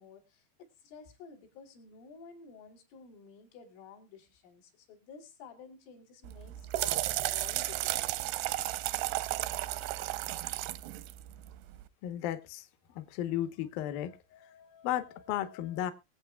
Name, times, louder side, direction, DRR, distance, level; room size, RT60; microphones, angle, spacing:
voice 1, 0.0-8.2, left 5 dB, 90° left, 0 dB, 5.2 m, -52 dB
sound 1, 6.2-11.8, right 16 dB, 85° right, 2.4 m, -34 dB
voice 2, 12.0-12.7 13.0-15.9, left 12 dB, 75° left, 10 dB, 2.2 m, -35 dB
22.5 x 8.2 x 2.3 m, 0.25 s
omnidirectional pair, 5.5 m